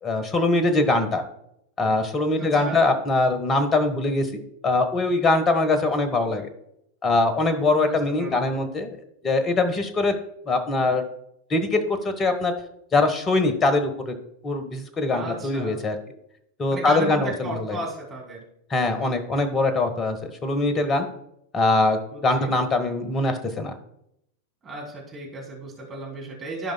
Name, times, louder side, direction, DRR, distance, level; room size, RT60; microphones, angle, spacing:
voice 1, 0.0-1.2 1.8-4.3 4.6-6.5 7.0-9.0 9.2-10.1 10.5-11.0 11.5-12.5 12.9-15.9 16.6-17.8 18.7-21.1 21.5-23.7, left 2 dB, 25° left, 9 dB, 1.2 m, -22 dB
voice 2, 2.4-2.8 7.8-8.5 15.1-15.9 16.7-18.4 22.1-22.5 24.6-26.7, right 2 dB, 25° right, -2 dB, 2.8 m, -34 dB
15.5 x 5.1 x 2.2 m, 0.76 s
figure-of-eight pair, 90°, 0 cm